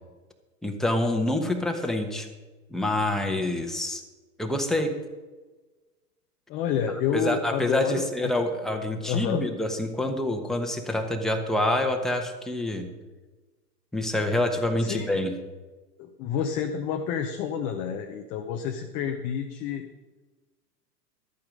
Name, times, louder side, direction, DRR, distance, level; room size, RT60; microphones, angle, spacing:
voice 1, 0.6-2.3 2.7-4.0 4.4-4.9 7.1-12.9 13.9-15.3, left 1 dB, ahead, 3 dB, 1.0 m, -26 dB
voice 2, 6.5-8.3 9.1-9.5 14.8-15.2 16.0-19.8, left 7 dB, 20° left, 4 dB, 0.4 m, -29 dB
12.5 x 8.7 x 5.2 m, 1.3 s
hypercardioid pair, 110°, 49 cm